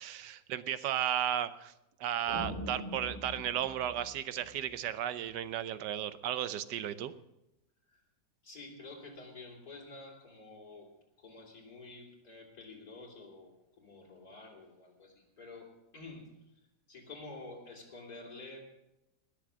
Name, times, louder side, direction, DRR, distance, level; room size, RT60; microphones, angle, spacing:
voice 1, 0.0-1.7 2.0-7.1, right 10 dB, 75° right, 13 dB, 1.3 m, -34 dB
sound 1, 2.3-4.7, left 1 dB, 30° left, 2.9 m, -43 dB
voice 2, 8.4-10.9 11.2-16.4 16.9-18.6, left 3 dB, 55° left, -1 dB, 3.7 m, -49 dB
20.0 x 7.1 x 6.4 m, 0.90 s
omnidirectional pair, 1.9 m